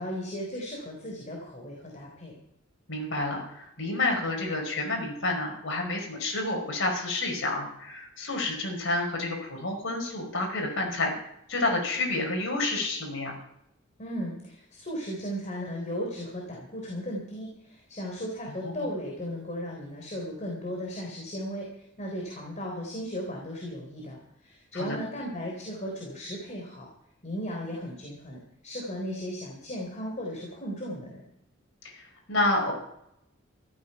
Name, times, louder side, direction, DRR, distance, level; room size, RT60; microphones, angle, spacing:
voice 1, 0.0-2.3 14.0-26.9 27.2-31.2, equal, 35° left, -1 dB, 3.7 m, -36 dB
voice 2, 2.9-11.1 11.5-13.4 18.6-18.7 24.7-25.0 31.8-32.7, left 2 dB, 65° left, 2 dB, 5.0 m, -29 dB
14.0 x 13.0 x 5.7 m, 0.77 s
head